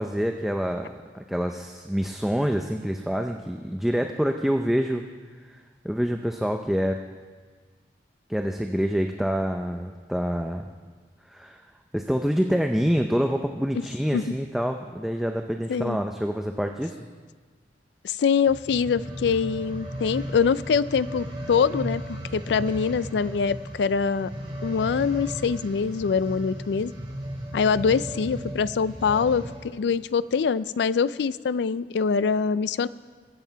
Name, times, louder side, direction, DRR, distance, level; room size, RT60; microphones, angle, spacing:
voice 1, 0.0-5.0 5.5-5.6 5.8-7.0 8.3-10.6 11.3-11.6 11.9-17.0, equal, ahead, 4 dB, 0.5 m, -26 dB
voice 2, 18.0-24.3 24.6-26.9 27.5-32.9, left 6 dB, 75° left, 17 dB, 0.4 m, -24 dB
sound 1, 18.3-29.7 30.3-30.4, right 1 dB, 30° right, 4.0 m, -36 dB
23.0 x 7.9 x 4.6 m, 1.5 s
head